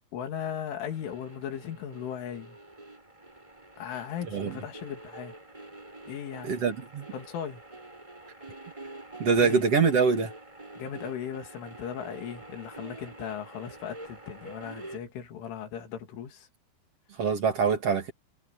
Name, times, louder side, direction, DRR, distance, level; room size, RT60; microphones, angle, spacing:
voice 1, 0.1-2.6 3.8-5.3 6.1-6.5 7.1-7.6 8.4-8.5 9.4-9.6 10.7-16.5, left 8 dB, 80° left, 5.4 m, -37 dB
sound 1, 0.9-15.0, right 2 dB, 5° right, 7.0 m, -46 dB
voice 2, 6.4-7.1 9.2-10.3 17.2-18.1, right 5 dB, 40° right, 2.6 m, -24 dB
omnidirectional pair, 5.6 m